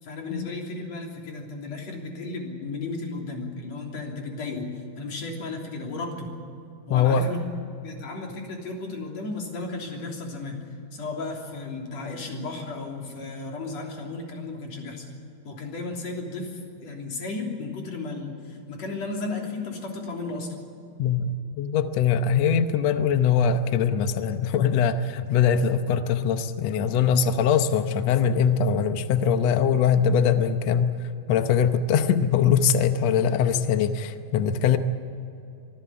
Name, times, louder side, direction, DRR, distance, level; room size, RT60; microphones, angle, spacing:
voice 1, 0.0-6.4 6.9-7.4 7.8-10.6 10.9-15.0 15.4-20.5 26.8-27.1, left 3 dB, 45° left, 0 dB, 4.2 m, -34 dB
voice 2, 6.9-7.2 21.0-34.8, left 7 dB, 85° left, 9 dB, 1.4 m, -22 dB
24.0 x 15.0 x 8.7 m, 2.6 s
omnidirectional pair, 4.4 m